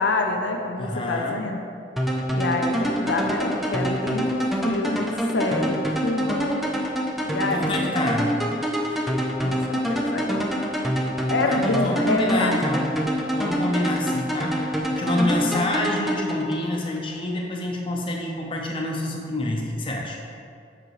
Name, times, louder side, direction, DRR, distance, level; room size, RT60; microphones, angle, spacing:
voice 1, 0.0-1.7 2.3-6.7 7.2-7.8 9.4-10.5 11.3-12.5, left 2 dB, 75° left, 3 dB, 0.6 m, -27 dB
voice 2, 0.8-1.4 7.5-9.1 11.4-12.9 13.3-20.2, left 1 dB, 25° left, -1 dB, 0.8 m, -27 dB
sound 1, 2.0-17.0, equal, ahead, 0.4 m, -26 dB
7.7 x 6.0 x 3.1 m, 2.3 s
head